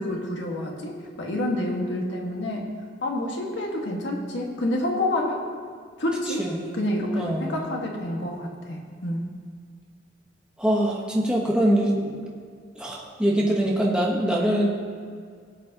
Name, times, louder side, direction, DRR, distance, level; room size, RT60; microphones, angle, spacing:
voice 1, 0.0-2.7 3.0-5.5 6.0-9.4, left 1 dB, 85° left, 0 dB, 1.7 m, -28 dB
voice 2, 6.3-6.7 7.1-7.6 10.6-12.3 12.7-14.7, right 1 dB, 5° right, -3 dB, 1.1 m, -23 dB
18.0 x 8.4 x 2.9 m, 2.1 s
head